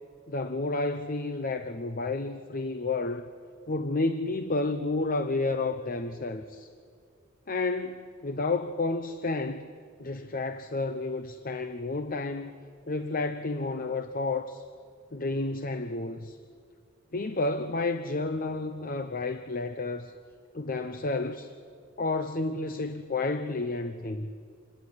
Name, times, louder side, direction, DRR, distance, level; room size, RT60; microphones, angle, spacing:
voice 1, 0.3-3.3 3.7-6.7 7.5-9.7 10.0-12.5 12.9-14.6 15.1-16.4 17.1-20.1 20.5-21.5 22.0-24.3, left 3 dB, 45° left, 0.9 m, -31 dB
27.5 x 19.5 x 9.7 m
head